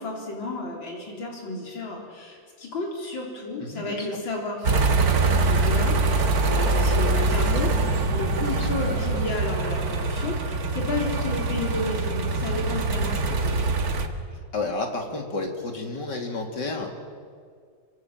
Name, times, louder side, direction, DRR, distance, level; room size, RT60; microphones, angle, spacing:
voice 1, 0.0-7.7 8.1-13.7, left 2 dB, 85° left, 0 dB, 4.7 m, -32 dB
voice 2, 3.6-4.2 8.5-9.2 14.5-16.9, left 3 dB, 65° left, 3 dB, 3.5 m, -31 dB
sound 1, 4.6-14.1, right 3 dB, 55° right, 2.0 m, -24 dB
25.5 x 25.0 x 7.6 m, 2.2 s
omnidirectional pair, 2.0 m